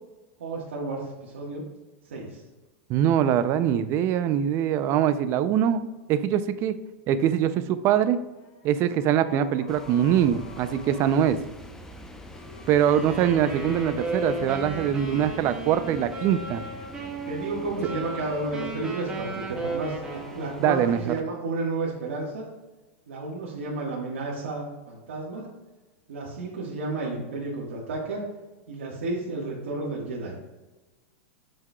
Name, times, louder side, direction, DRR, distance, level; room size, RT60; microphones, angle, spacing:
voice 1, 0.4-1.6 2.1-2.4 17.3-22.5 23.1-25.5 26.1-28.2 28.7-30.4, right 3 dB, 85° right, -4 dB, 1.4 m, -32 dB
voice 2, 2.9-6.8 7.1-8.2 8.6-11.4 12.7-16.6 20.6-21.1, right 9 dB, 35° right, 12 dB, 0.4 m, -23 dB
sound 1, 8.3-11.3 12.2-15.4, left 4 dB, 50° left, 1.2 m, -47 dB
sound 2, 9.7-21.2, left 1 dB, 5° left, 0.6 m, -44 dB
Wind instrument woodwind instrument, 12.8-20.8, right 2 dB, 10° right, 1.5 m, -35 dB
7.6 x 5.9 x 2.3 m, 1.2 s
supercardioid pair, 130°, 7 cm